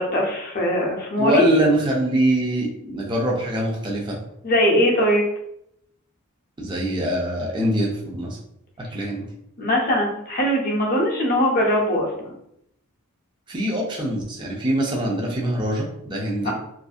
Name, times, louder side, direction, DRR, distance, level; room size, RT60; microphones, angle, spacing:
voice 1, 0.0-1.4 4.4-5.3 9.6-12.3 16.4-16.5, equal, 40° left, -1 dB, 0.6 m, -21 dB
voice 2, 1.2-4.2 6.6-8.4 8.8-9.2 13.5-16.5, right 1 dB, 20° right, -3 dB, 0.4 m, -23 dB
2.5 x 2.5 x 2.4 m, 0.76 s
head